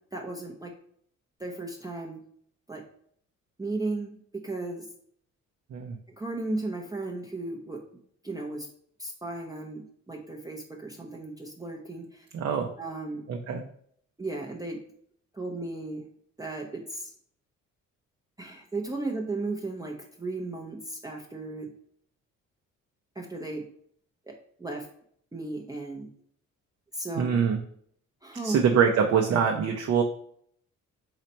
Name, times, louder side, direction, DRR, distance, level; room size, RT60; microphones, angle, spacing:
voice 1, 0.1-0.7 1.4-2.2 2.7-2.8 3.6-4.1 4.4-4.8 6.2-7.8 8.2-8.7 9.0-12.3 12.8-13.2 14.2-14.8 15.3-16.0 16.4-17.1 18.4-21.7 23.2-23.6 24.3-24.9 25.3-26.1 26.9-27.2 28.2-28.6, right 2 dB, 10° right, 0 dB, 0.7 m, -35 dB
voice 2, 12.3-12.7 13.3-13.6 27.2-27.6 28.4-30.0, right 7 dB, 55° right, 2 dB, 0.6 m, -24 dB
4.0 x 3.2 x 4.2 m, 0.64 s
cardioid pair, 90°, 30 cm